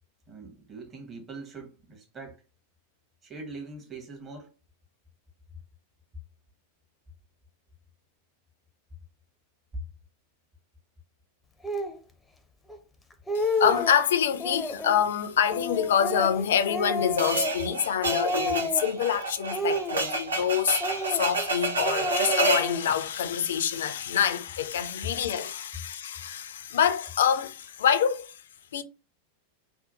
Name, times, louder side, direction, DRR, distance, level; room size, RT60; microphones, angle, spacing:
voice 1, 0.3-2.4 3.2-4.5, right 3 dB, 20° right, 0.8 m, -42 dB
Speech, 11.6-12.0 12.7-12.8 13.1-14.0 14.4-15.0 15.5-17.8 18.1-19.0 19.5-20.4 20.8-21.5 21.8-23.0, left 1 dB, 5° left, 0.5 m, -31 dB
voice 2, 13.3-20.8 21.1-28.4 28.7-28.8, left 8 dB, 60° left, 0.4 m, -26 dB
sound 1, 17.2-22.7, right 3 dB, 75° right, 0.7 m, -29 dB
2.7 x 2.1 x 3.9 m
figure-of-eight pair, 90°, 0 cm